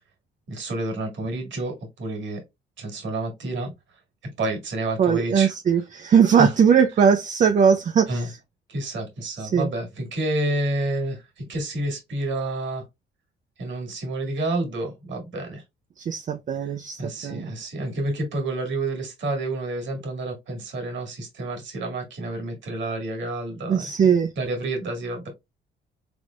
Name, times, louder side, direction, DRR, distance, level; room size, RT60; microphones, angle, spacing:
voice 1, 0.5-2.4 2.8-3.7 4.4-5.5 6.2-6.5 8.1-8.3 8.7-12.8 13.6-15.6 16.6-16.7 17.0-23.9 24.4-25.3, right 1 dB, 70° right, 1.8 m, -29 dB
voice 2, 5.0-8.2 9.4-9.7 16.0-17.5 23.7-24.3, right 7 dB, 40° right, 0.4 m, -20 dB
3.9 x 3.4 x 2.2 m
cardioid pair, 90°, 20 cm